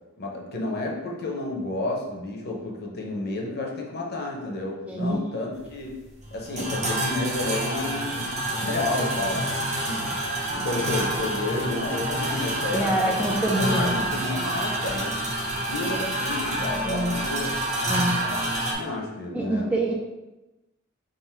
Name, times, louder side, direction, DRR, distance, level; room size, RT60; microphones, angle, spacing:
voice 1, 0.2-5.9 6.3-9.5 9.9-10.2 10.5-15.2 15.6-17.5 18.2-19.7, left 2 dB, 45° left, -1 dB, 0.7 m, -31 dB
voice 2, 4.9-5.2 12.7-14.1 16.9-17.1 17.9-18.1 19.3-19.9, right 1 dB, 5° right, -2 dB, 0.3 m, -25 dB
sound 1, 5.5-18.7, right 1 dB, 30° right, 0.7 m, -28 dB
3.7 x 2.5 x 4.3 m, 1.1 s
head